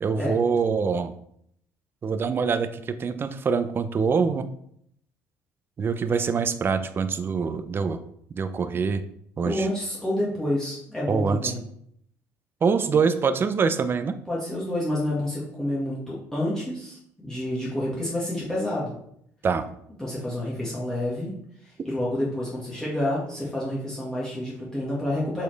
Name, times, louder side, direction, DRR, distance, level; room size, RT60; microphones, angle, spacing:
voice 1, 0.0-1.1 2.0-4.4 5.8-8.0 8.3-9.0 9.4-9.7 11.1-11.5 12.6-14.2 19.4-19.7, right 5 dB, 35° right, 11 dB, 0.6 m, -24 dB
voice 2, 9.4-11.6 14.3-18.9 20.0-21.4 21.6-25.4, left 1 dB, 10° left, -7 dB, 1.9 m, -29 dB
7.1 x 4.3 x 3.4 m, 0.70 s
cardioid pair, 95°, 6 cm